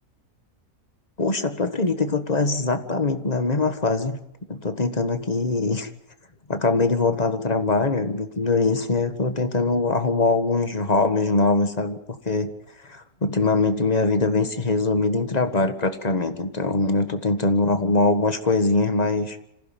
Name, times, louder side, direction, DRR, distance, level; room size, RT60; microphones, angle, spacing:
voice 1, 1.2-4.2 4.5-5.9 6.5-12.0 12.2-12.5 12.9-19.4, left 3 dB, 30° left, 8 dB, 1.7 m, -22 dB
26.5 x 16.0 x 7.6 m, 0.83 s
omnidirectional pair, 1.5 m